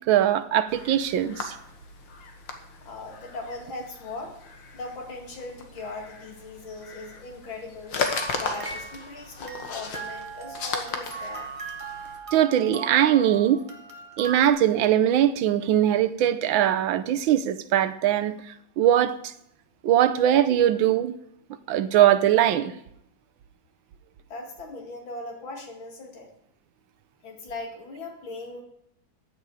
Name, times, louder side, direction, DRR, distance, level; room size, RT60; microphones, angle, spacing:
voice 1, 0.1-1.6 12.3-13.6 14.2-18.3 18.8-19.3 19.8-21.1 21.7-22.7, right 11 dB, 85° right, 1.6 m, -21 dB
sound 1, 0.7-12.2, left 5 dB, 70° left, 2.1 m, -37 dB
voice 2, 2.8-4.3 4.7-8.0 8.4-11.5 24.3-26.3 27.2-28.6, left 2 dB, 85° left, 3.0 m, -39 dB
sound 2, 8.0-14.5, right 5 dB, 20° right, 1.4 m, -39 dB
15.0 x 10.0 x 4.8 m
omnidirectional pair, 2.1 m